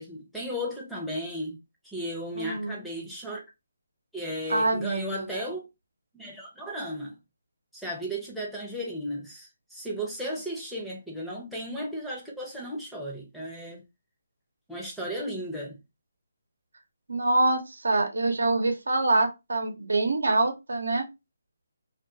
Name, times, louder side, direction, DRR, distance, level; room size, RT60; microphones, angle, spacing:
voice 1, 0.0-1.6 1.8-3.4 4.1-5.6 6.1-7.2 7.7-13.8 14.7-15.8, equal, ahead, 0.6 m, -35 dB
voice 2, 2.4-2.8 4.5-5.3 17.1-21.1, right 2 dB, 80° right, 0.7 m, -25 dB
2.4 x 2.3 x 2.6 m
hypercardioid pair, 160°, 0 cm